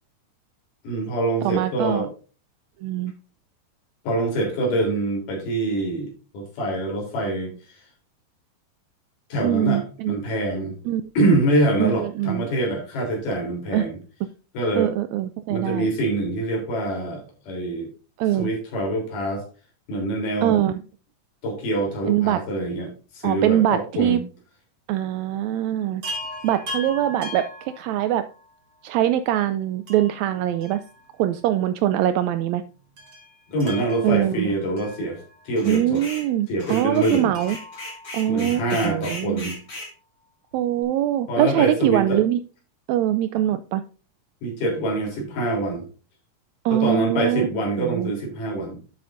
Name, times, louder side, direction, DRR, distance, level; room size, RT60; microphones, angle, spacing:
voice 1, 0.8-2.1 4.1-7.8 9.3-10.8 11.2-14.0 14.5-14.9 15.5-17.9 18.4-19.4 19.9-20.6 21.4-24.2 33.5-36.0 36.5-37.3 38.3-39.6 41.3-42.2 44.4-45.9 46.7-48.8, right 1 dB, 80° left, 1 dB, 5.1 m, -25 dB
voice 2, 1.4-2.1 2.8-3.1 9.4-10.2 10.9-11.0 11.8-12.4 13.7-13.8 14.8-15.9 18.2-18.5 20.4-20.8 22.1-22.4 23.2-24.2 24.9-26.0 26.4-28.2 28.8-30.8 31.2-32.6 34.0-34.5 35.6-37.6 38.1-39.4 40.5-42.4 42.9-43.8 46.6-47.5 47.8-48.1, right 12 dB, 80° right, 11 dB, 1.6 m, -22 dB
Chime, 26.0-28.5 29.9-31.4 31.7-31.8 33.0-35.7 37.3-38.9 40.5-40.6 40.8-40.9, left 1 dB, 40° right, 4.0 m, -39 dB
sound 1, 35.6-36.3 36.6-39.9, left 1 dB, 25° left, 3.4 m, -37 dB
12.0 x 7.8 x 2.6 m, 0.34 s
omnidirectional pair, 3.7 m